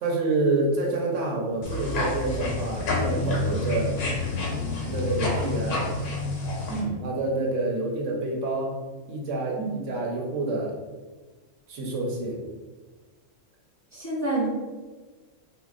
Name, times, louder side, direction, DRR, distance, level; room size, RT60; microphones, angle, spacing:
voice 1, 0.0-3.9 4.8-5.9 7.0-8.8 9.1-10.7 11.7-12.4, right 2 dB, 75° right, -1 dB, 1.0 m, -27 dB
sound 1, 1.6-6.8, left 3 dB, 75° left, 1.1 m, -28 dB
voice 2, 6.7-7.0 9.6-9.7 13.9-14.5, right 2 dB, 20° left, -7 dB, 0.5 m, -28 dB
4.5 x 2.3 x 2.4 m, 1.3 s
omnidirectional pair, 1.3 m